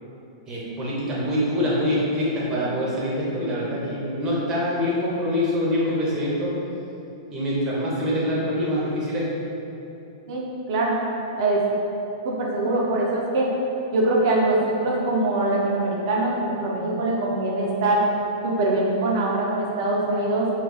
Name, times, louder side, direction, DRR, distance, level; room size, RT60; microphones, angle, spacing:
voice 1, 0.5-6.5 7.3-9.2, left 1 dB, 25° right, -6 dB, 0.9 m, -25 dB
voice 2, 10.3-11.0 11.4-11.6 12.2-13.5 13.9-18.0 18.4-20.5, right 2 dB, 55° right, -3 dB, 0.6 m, -23 dB
2.4 x 2.3 x 3.8 m, 2.8 s
hypercardioid pair, 110°, 3 cm